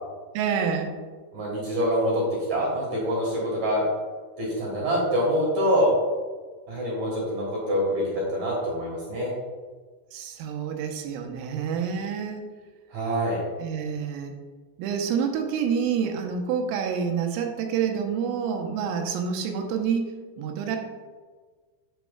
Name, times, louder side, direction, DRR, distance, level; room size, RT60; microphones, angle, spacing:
voice 1, 0.3-0.9 10.1-12.4 13.6-14.3 14.8-20.8, right 7 dB, 90° right, 3 dB, 3.4 m, -28 dB
voice 2, 1.3-2.2 2.5-3.8 4.4-5.9 6.7-9.3 12.9-13.4, equal, 65° right, -4 dB, 1.9 m, -25 dB
8.7 x 8.0 x 2.3 m, 1.4 s
omnidirectional pair, 5.7 m